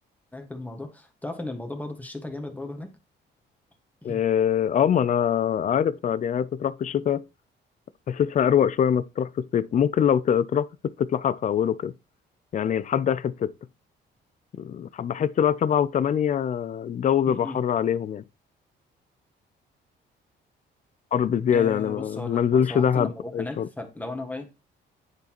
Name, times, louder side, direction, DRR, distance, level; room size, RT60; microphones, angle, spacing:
voice 1, 0.3-2.9 4.0-4.2 17.3-17.6 21.5-24.5, left 2 dB, 10° left, 1.6 m, -36 dB
voice 2, 4.0-7.2 8.1-10.7 11.0-11.9 12.5-13.5 14.6-18.2 21.1-23.7, left 8 dB, 40° left, 0.4 m, -23 dB
9.6 x 4.0 x 3.0 m
cardioid pair, 90°, 20 cm